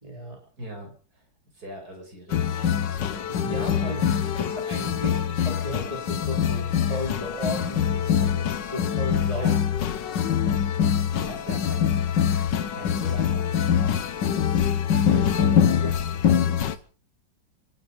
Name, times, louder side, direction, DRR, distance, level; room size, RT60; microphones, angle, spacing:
voice 1, 0.0-0.4 3.4-4.0 4.4-9.5 15.8-15.9, equal, 20° right, 0 dB, 3.7 m, -35 dB
voice 2, 0.6-1.2 1.5-3.3 3.8-4.5 9.3-9.6 10.9-12.2 12.6-14.5 15.1-16.8, equal, 50° right, 3 dB, 6.5 m, -41 dB
sound 1, 2.3-16.8, left 8 dB, 70° left, 1.7 m, -24 dB
27.0 x 10.0 x 5.2 m, 0.42 s
omnidirectional pair, 2.0 m